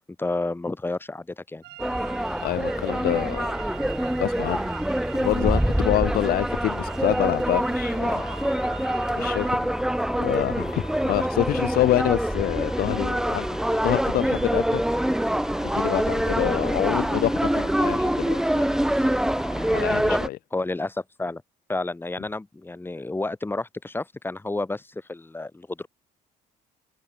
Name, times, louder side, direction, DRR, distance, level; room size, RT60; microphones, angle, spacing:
voice 1, 0.2-1.6 20.1-20.2 20.5-21.4 21.7-25.9, left 2 dB, 10° left, 3.0 m, -30 dB
sound 1, 1.6-9.5, right 16 dB, 80° right, 4.3 m, -44 dB
sound 2, 1.8-20.3, right 1 dB, 5° right, 1.2 m, -25 dB
voice 2, 2.4-3.5 4.2-4.7 5.1-8.9 9.2-9.8 10.2-13.5 13.7-14.8 15.6-18.7 18.9-19.1 19.7-20.4, left 15 dB, 60° left, 0.5 m, -27 dB
sound 3, 8.1-19.9, left 5 dB, 30° left, 7.8 m, -44 dB
cardioid pair, 110°, 17 cm